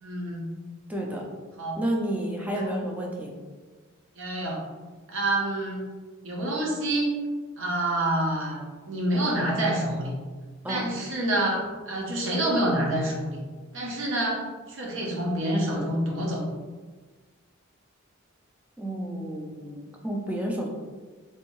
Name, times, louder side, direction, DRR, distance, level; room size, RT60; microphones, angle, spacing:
voice 1, 0.0-0.5 1.6-1.7 4.2-4.6 5.1-5.8 6.2-7.1 7.6-10.2 10.7-13.4 13.7-16.4, right 1 dB, 65° right, -2 dB, 0.8 m, -27 dB
voice 2, 0.9-1.2 1.8-3.3 10.6-10.9 18.8-20.7, right 1 dB, 5° right, -1 dB, 0.4 m, -30 dB
3.4 x 2.6 x 3.0 m, 1.4 s
head